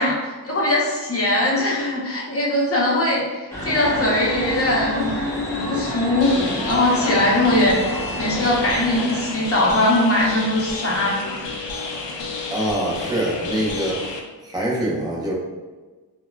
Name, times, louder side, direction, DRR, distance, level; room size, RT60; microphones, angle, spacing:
voice 1, 0.0-5.2 5.5-11.5, left 1 dB, 35° left, -4 dB, 0.8 m, -21 dB
sound 1, 3.5-9.3, left 1 dB, 5° left, 1.2 m, -29 dB
sound 2, 6.2-14.2, left 4 dB, 85° left, 0.5 m, -31 dB
voice 2, 12.5-14.0 14.4-15.3, right 1 dB, 10° right, -5 dB, 0.7 m, -24 dB
3.5 x 2.2 x 2.2 m, 1.3 s
wide cardioid pair, 85°, 42 cm